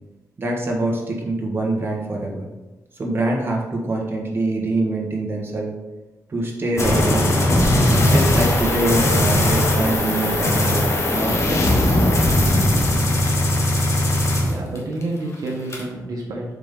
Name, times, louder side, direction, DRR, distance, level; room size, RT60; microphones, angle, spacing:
voice 1, 0.4-2.5 2.9-5.7 6.3-7.6 8.1-12.0, right 2 dB, 35° right, -1 dB, 1.4 m, -24 dB
sound 1, 6.8-15.0 15.3-15.8, left 1 dB, 45° left, 1.4 m, -19 dB
voice 2, 14.4-16.4, right 2 dB, 70° right, -1 dB, 1.2 m, -29 dB
7.2 x 4.1 x 3.7 m, 1.1 s
wide cardioid pair, 115°, 6 cm